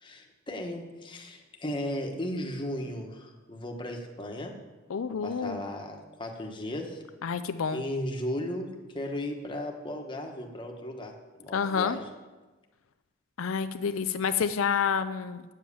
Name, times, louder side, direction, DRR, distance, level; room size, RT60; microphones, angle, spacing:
voice 1, 0.0-4.5 5.2-7.0 7.7-12.1, left 1 dB, 25° left, 2 dB, 1.2 m, -36 dB
voice 2, 4.9-5.6 7.2-7.8 11.5-12.0 13.4-15.5, left 6 dB, 85° left, 10 dB, 0.5 m, -29 dB
9.2 x 7.4 x 6.9 m, 1.2 s
head